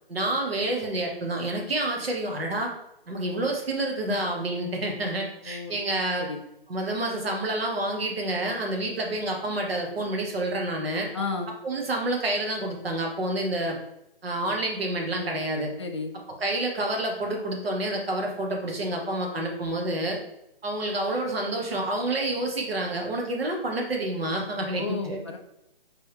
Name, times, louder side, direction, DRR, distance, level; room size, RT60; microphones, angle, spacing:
voice 1, 0.1-2.7 3.1-6.3 6.7-11.1 11.6-13.8 14.2-15.7 16.4-20.2 20.6-25.2, right 1 dB, 75° right, 1 dB, 1.3 m, -28 dB
voice 2, 5.5-5.8 6.2-6.4 11.1-11.5 15.8-16.1 24.7-25.4, left 4 dB, 30° left, 2 dB, 0.4 m, -32 dB
4.4 x 3.2 x 3.4 m, 0.84 s
hypercardioid pair, 160°, 30 cm